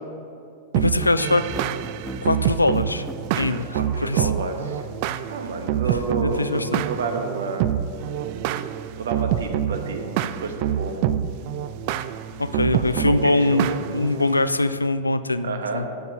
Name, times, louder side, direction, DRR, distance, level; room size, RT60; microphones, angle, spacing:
sound 1, 0.7-14.5, right 10 dB, 45° right, 0.3 m, -27 dB
voice 1, 0.8-1.5 2.2-3.1 3.3-4.3 6.2-6.9 12.4-15.8, left 2 dB, 85° left, 13 dB, 0.4 m, -22 dB
sound 2, 0.8-3.6, right 1 dB, 5° right, 0.6 m, -36 dB
voice 2, 3.5-4.8 5.3-7.6 9.0-11.1 12.7-13.7 15.4-15.8, right 4 dB, 65° right, 5 dB, 1.2 m, -30 dB
11.5 x 5.4 x 6.4 m, 2.6 s
figure-of-eight pair, 90°, 0 cm